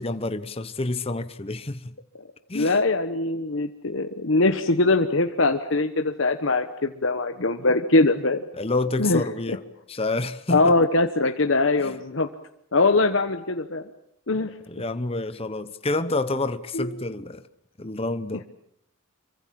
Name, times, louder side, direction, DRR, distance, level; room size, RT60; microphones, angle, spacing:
voice 1, 0.0-1.9 2.5-2.8 8.6-9.6 9.9-10.7 11.8-11.9 14.7-17.4 17.8-18.4, left 2 dB, 30° left, 0.9 m, -28 dB
voice 2, 2.5-8.4 9.0-9.2 10.5-12.3 12.7-13.8 14.3-14.5 16.7-17.0, left 2 dB, 70° left, 1.2 m, -22 dB
26.0 x 24.0 x 7.6 m
head